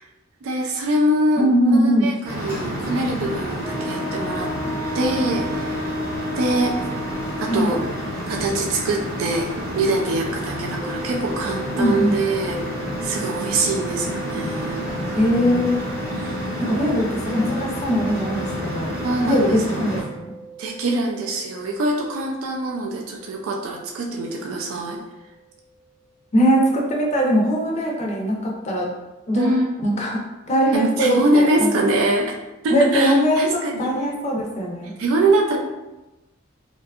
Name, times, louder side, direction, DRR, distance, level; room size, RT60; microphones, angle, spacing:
voice 1, 0.4-4.5 4.9-5.9 6.4-6.7 7.4-7.8 8.3-9.5 9.7-12.6 13.0-14.8 16.1-16.9 19.0-19.5 20.6-25.0 27.5-27.6 29.4-29.7 30.7-32.3 32.6-33.9 35.0-35.6, right 2 dB, 75° right, 1 dB, 0.3 m, -23 dB
voice 2, 1.4-2.1 7.5-7.8 11.7-12.1 15.2-15.8 16.6-18.9 19.2-20.3 26.3-28.9 29.3-29.5 29.8-31.7 32.7-34.9, equal, 35° left, -1 dB, 0.4 m, -21 dB
sound 1, 2.2-20.0, equal, 45° right, 0.7 m, -30 dB
Wind instrument woodwind instrument, 3.6-8.3, left 1 dB, 15° right, 0.8 m, -31 dB
sound 2, 10.8-25.7 26.0-26.1, right 2 dB, 80° left, 0.7 m, -38 dB
2.6 x 2.2 x 2.3 m, 1.0 s
head